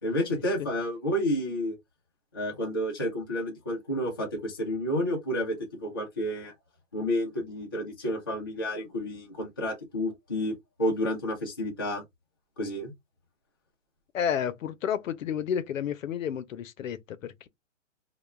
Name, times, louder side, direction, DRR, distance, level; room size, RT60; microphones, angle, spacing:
voice 1, 0.0-1.8 2.3-6.5 6.9-12.0 12.6-12.9, equal, 20° left, 0.3 m, -30 dB
voice 2, 14.1-17.5, left 8 dB, 85° left, 0.6 m, -31 dB
2.2 x 2.2 x 3.0 m
hypercardioid pair, 150°, 39 cm